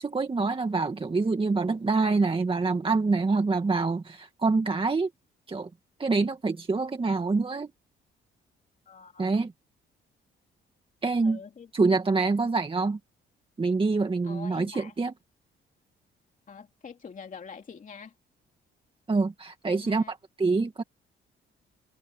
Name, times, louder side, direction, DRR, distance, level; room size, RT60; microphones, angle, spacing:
voice 1, 0.0-5.1 5.5-5.7 6.0-7.7 9.2-9.5 11.0-11.4 11.7-13.0 13.6-15.1 19.1-20.8, right 3 dB, 25° right, 1.9 m, -26 dB
voice 2, 8.9-9.3 11.2-12.0 14.2-14.9 16.5-18.1 19.7-20.1, left 6 dB, 40° left, 2.7 m, -45 dB
cardioid pair, 90°, 20 cm